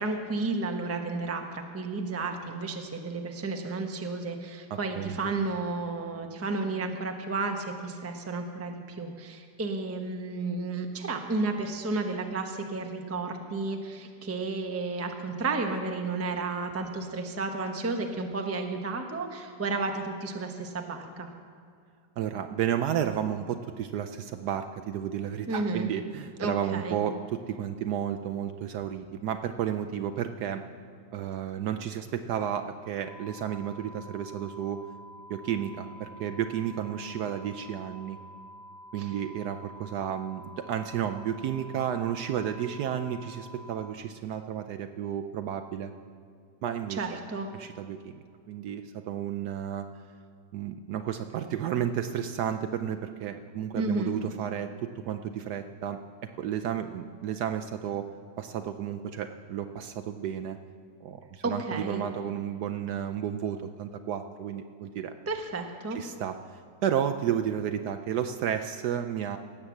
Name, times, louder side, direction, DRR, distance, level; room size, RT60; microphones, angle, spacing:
voice 1, 0.0-21.3 25.5-25.9 26.4-27.0 39.0-39.1 46.9-47.5 53.7-54.2 61.4-62.0 65.3-66.0, right 3 dB, 15° right, 4 dB, 0.6 m, -32 dB
voice 2, 4.7-5.2 22.2-30.6 31.1-34.8 35.3-38.2 38.9-45.9 46.6-47.2 47.5-48.1 48.5-49.9 50.5-56.0 56.4-58.1 58.4-60.6 61.0-65.1 65.9-69.4, right 9 dB, 70° right, 7 dB, 1.0 m, -32 dB
sound 1, 33.1-43.9, equal, 60° left, 2.1 m, -48 dB
17.5 x 7.9 x 7.1 m, 2.3 s
omnidirectional pair, 2.1 m